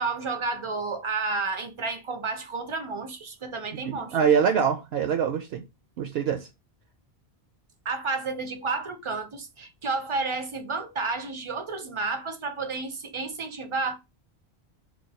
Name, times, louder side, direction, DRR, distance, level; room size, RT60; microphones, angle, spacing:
voice 1, 0.0-4.2 7.9-13.9, right 4 dB, 40° right, 0.4 m, -31 dB
voice 2, 3.7-5.6 6.0-6.5, right 7 dB, 75° right, 0.8 m, -24 dB
3.1 x 2.3 x 4.0 m
omnidirectional pair, 1.1 m